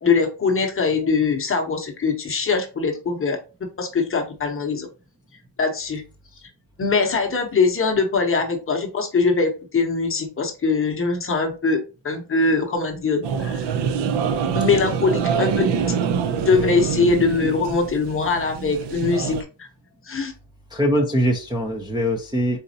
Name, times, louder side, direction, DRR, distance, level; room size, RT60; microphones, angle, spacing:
voice 1, 0.0-3.4 3.8-4.9 5.6-6.0 6.8-13.6 14.5-16.0 16.4-19.7 20.0-20.3, left 4 dB, 25° left, 4 dB, 0.8 m, -22 dB
sound 1, 13.2-19.4, right 6 dB, 60° right, 0.6 m, -25 dB
voice 2, 20.7-22.6, equal, 10° right, -3 dB, 0.5 m, -22 dB
4.1 x 3.8 x 2.7 m, 0.32 s
cardioid pair, 155°, 47 cm